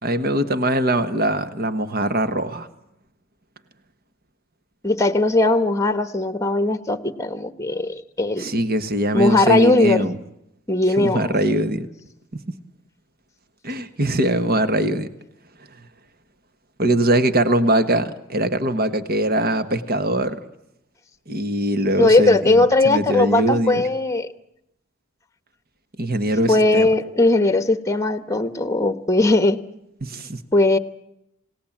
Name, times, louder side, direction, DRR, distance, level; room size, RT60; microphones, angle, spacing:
voice 1, 0.0-2.7 8.4-10.2 11.0-11.9 12.3-12.4 13.6-15.1 16.8-20.4 21.3-23.8 26.0-26.9 30.0-30.4, right 1 dB, 45° right, 10 dB, 1.5 m, -22 dB
voice 2, 4.8-8.5 9.1-10.1 10.7-11.3 22.0-24.3 26.5-29.6 30.5-30.8, left 2 dB, 15° left, 11 dB, 1.2 m, -18 dB
28.0 x 19.0 x 7.4 m, 0.82 s
head